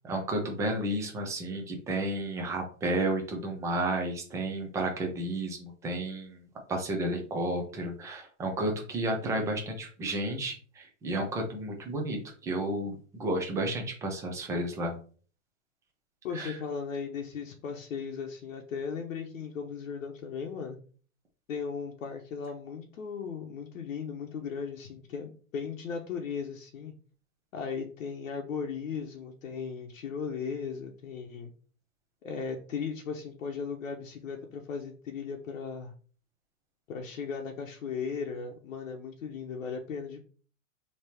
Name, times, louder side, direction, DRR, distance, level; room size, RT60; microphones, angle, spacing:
voice 1, 0.0-6.4 6.7-14.9 16.3-16.6, right 1 dB, 10° right, 2 dB, 0.5 m, -32 dB
voice 2, 16.2-20.8 21.5-26.9 27.5-31.5 32.2-35.9 36.9-40.2, left 6 dB, 75° left, 2 dB, 0.9 m, -37 dB
3.4 x 2.9 x 4.3 m, 0.42 s
hypercardioid pair, 140°, 40 cm